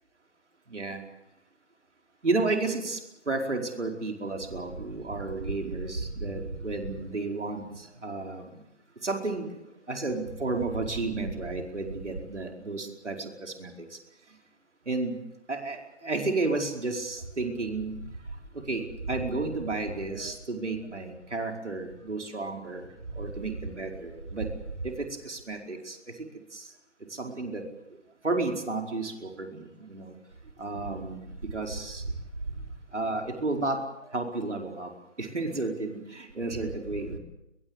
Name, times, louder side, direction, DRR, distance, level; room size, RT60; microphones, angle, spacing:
voice 1, 2.2-3.0 3.3-7.6 8.0-8.4 9.0-9.5 9.9-13.7 14.9-15.1 15.5-15.8 16.0-17.9 18.7-22.8 23.1-24.5 24.8-24.9 25.2-26.0 26.5-26.6 27.2-27.6 28.2-30.1 30.6-32.0 32.9-33.8 34.1-34.9 35.2-37.2, right 3 dB, 70° right, 2 dB, 4.9 m, -32 dB
22.0 x 22.0 x 8.1 m, 0.88 s
figure-of-eight pair, 170°, 36 cm